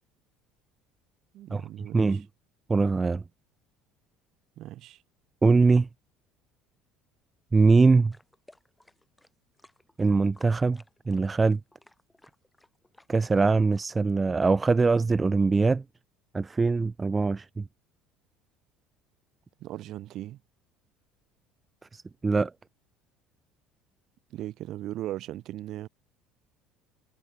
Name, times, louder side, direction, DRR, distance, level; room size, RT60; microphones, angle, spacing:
voice 1, 1.3-2.2 4.6-5.0 19.6-20.4 24.3-25.9, right 14 dB, 60° right, 0.7 m, -38 dB
voice 2, 2.7-3.2 5.4-5.9 7.5-8.1 10.0-11.6 13.1-15.8 16.3-17.6 21.9-22.5, right 4 dB, 20° right, 0.6 m, -22 dB
sound 1, 8.1-14.1, left 1 dB, 5° left, 5.2 m, -58 dB
supercardioid pair, 100°, 0 cm